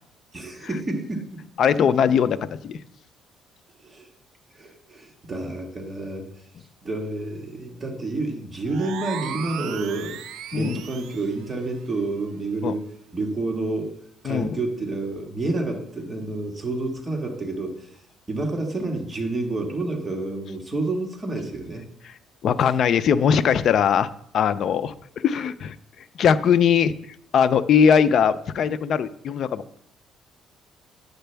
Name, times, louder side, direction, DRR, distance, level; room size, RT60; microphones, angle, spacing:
voice 1, 0.3-1.4 3.8-4.1 4.5-6.3 6.8-10.2 10.5-12.8 13.1-13.9 14.2-17.9 18.3-21.8, right 2 dB, 20° right, 1 dB, 1.6 m, -29 dB
voice 2, 1.6-2.8 10.5-10.8 12.6-12.7 14.2-14.5 22.4-24.1 24.3-25.8 26.2-26.9 27.3-29.6, left 7 dB, 55° left, 13 dB, 0.5 m, -20 dB
sound 1, 8.7-11.4, right 9 dB, 75° right, 0.5 m, -36 dB
10.5 x 7.9 x 3.4 m, 0.69 s
cardioid pair, 130°, 0 cm